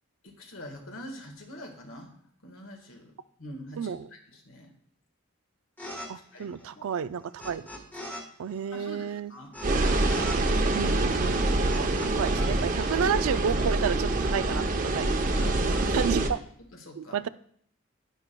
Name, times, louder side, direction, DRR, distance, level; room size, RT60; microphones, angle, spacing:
voice 1, 0.2-2.1 2.4-3.1 3.4-4.7 6.3-6.8 8.7-9.6 14.9-15.9 16.7-17.2, left 1 dB, 70° left, 3 dB, 1.6 m, -44 dB
voice 2, 3.8-4.1 6.1-7.7 8.4-9.3 10.7-15.0 15.9-16.4 17.0-17.3, right 7 dB, 75° right, 14 dB, 0.4 m, -31 dB
sound 1, 5.8-6.1 6.3-8.2 8.5-12.5 12.8-14.0, left 1 dB, 10° left, 1.1 m, -42 dB
sound 2, 9.6-16.3, right 2 dB, 40° right, 0.7 m, -26 dB
11.0 x 10.5 x 2.2 m, 0.64 s
head